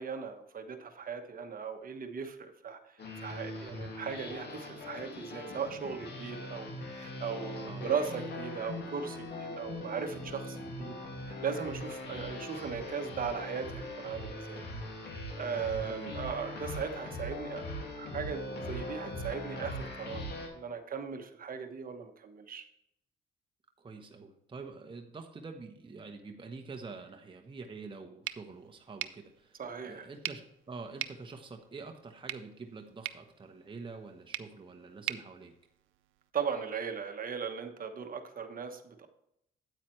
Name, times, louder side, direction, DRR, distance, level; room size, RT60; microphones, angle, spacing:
voice 1, 0.0-11.0 11.3-14.7 15.1-17.6 17.9-20.2 20.5-22.6 29.6-30.1 36.3-39.1, right 6 dB, 45° right, 7 dB, 1.2 m, -38 dB
sound 1, 3.0-20.5, left 1 dB, 55° left, 2.3 m, -41 dB
voice 2, 23.8-35.5, right 4 dB, 25° right, 3 dB, 1.0 m, -46 dB
sound 2, 28.2-36.3, right 15 dB, 85° right, 0.5 m, -44 dB
8.9 x 8.8 x 3.2 m, 0.80 s
cardioid pair, 90°, 20 cm